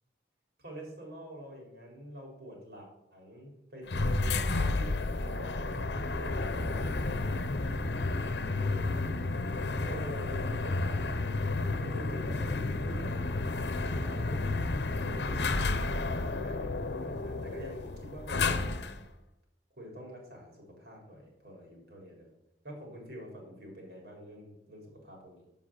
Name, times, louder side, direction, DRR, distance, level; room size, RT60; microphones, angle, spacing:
voice 1, 0.6-6.9 8.5-9.1 9.9-13.1 13.8-15.8 16.1-18.9 19.8-22.3 22.6-25.5, equal, 65° right, -1 dB, 4.1 m, -46 dB
sound 1, 3.9-19.1, left 3 dB, 75° left, 0.8 m, -31 dB
7.8 x 7.3 x 7.5 m, 0.88 s
head